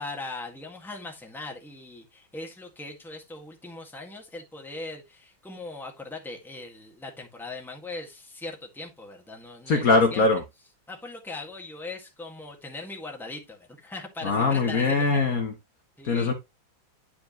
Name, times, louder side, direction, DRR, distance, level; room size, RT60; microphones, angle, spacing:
voice 1, 0.0-10.3 10.9-15.2 16.0-16.3, left 2 dB, ahead, 1.6 m, -40 dB
voice 2, 9.7-10.4 14.2-15.5 16.0-16.3, left 3 dB, 55° left, 1.4 m, -22 dB
10.5 x 4.8 x 3.0 m
omnidirectional pair, 2.1 m